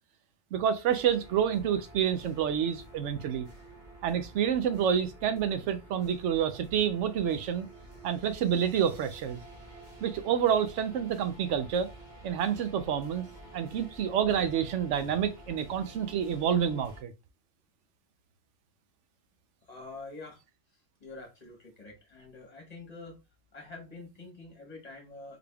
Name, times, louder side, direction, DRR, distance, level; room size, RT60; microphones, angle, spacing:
voice 1, 0.5-3.5 4.0-7.7 8.0-9.4 10.0-11.9 12.2-13.3 13.5-17.1, right 8 dB, 85° right, 0.9 m, -28 dB
sound 1, 0.8-17.0, right 2 dB, 40° right, 1.1 m, -50 dB
voice 2, 19.7-20.4 21.0-23.2 23.5-25.4, left 3 dB, 35° left, 1.3 m, -46 dB
3.9 x 3.4 x 2.2 m
omnidirectional pair, 1.2 m